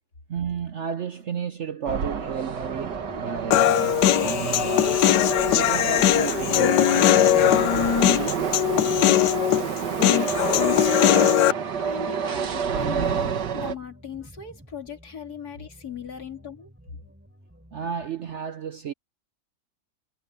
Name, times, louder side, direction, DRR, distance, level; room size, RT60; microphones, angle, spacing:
voice 1, 0.3-5.1 5.5-8.3 17.7-18.9, right 7 dB, 55° right, 0.9 m, -33 dB
sound 1, 1.9-13.8, right 6 dB, 85° right, 2.0 m, -29 dB
sound 2, 2.6-18.0, equal, 5° right, 5.8 m, -51 dB
Human voice, 3.5-11.5, left 12 dB, 85° left, 1.3 m, -20 dB
voice 2, 11.8-16.7, left 6 dB, 65° left, 3.2 m, -38 dB
omnidirectional pair, 1.8 m